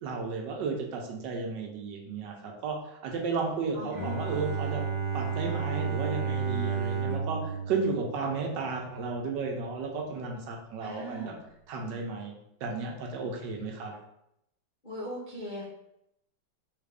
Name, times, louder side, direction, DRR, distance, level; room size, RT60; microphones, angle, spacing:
voice 1, 0.0-4.8 5.1-11.3 11.7-12.3 12.6-13.9, right 4 dB, 75° right, 1 dB, 1.2 m, -33 dB
voice 2, 3.7-4.5 10.8-11.4 14.8-15.6, equal, 55° left, -8 dB, 0.5 m, -39 dB
Bowed string instrument, 3.9-8.9, right 6 dB, 5° right, 0.6 m, -32 dB
3.4 x 2.4 x 3.3 m, 0.80 s
omnidirectional pair, 2.0 m